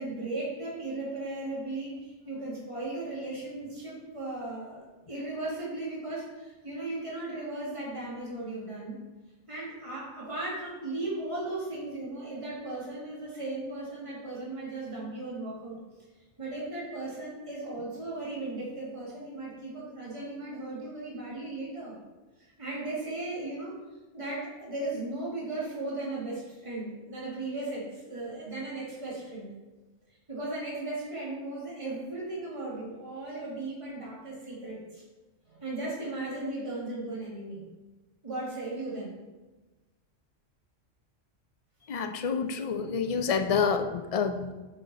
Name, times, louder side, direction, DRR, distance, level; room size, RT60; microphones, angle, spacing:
voice 1, 0.0-9.0 9.5-15.8 16.4-22.0 22.6-23.8 24.1-29.5 30.3-35.0 35.5-37.6 38.2-39.2, right 2 dB, 25° right, -6 dB, 2.1 m, -36 dB
voice 2, 41.9-44.5, left 6 dB, 65° left, 6 dB, 0.3 m, -28 dB
7.2 x 5.7 x 4.1 m, 1.2 s
omnidirectional pair, 1.3 m